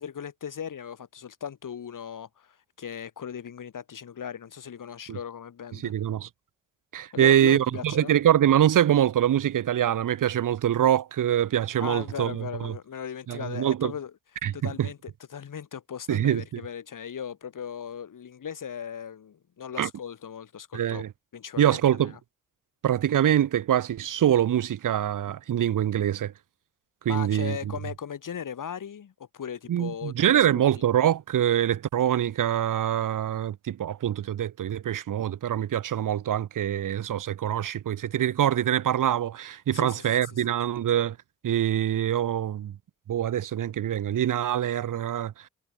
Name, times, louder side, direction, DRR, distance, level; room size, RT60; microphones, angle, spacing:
voice 1, 0.0-5.9 7.1-8.2 11.8-14.1 14.5-21.0 21.3-22.2 27.1-30.5 30.7-30.9 39.7-40.4, left 8 dB, 65° left, 3.4 m, -38 dB
voice 2, 5.8-6.3 6.9-12.7 13.3-13.9 14.4-14.9 16.1-16.6 19.8-19.9 20.7-21.1 21.6-22.1 22.8-26.3 27.0-27.6 29.7-41.2 41.4-42.7 43.1-45.3, right 10 dB, 65° right, 1.0 m, -24 dB
supercardioid pair, 50°, 34 cm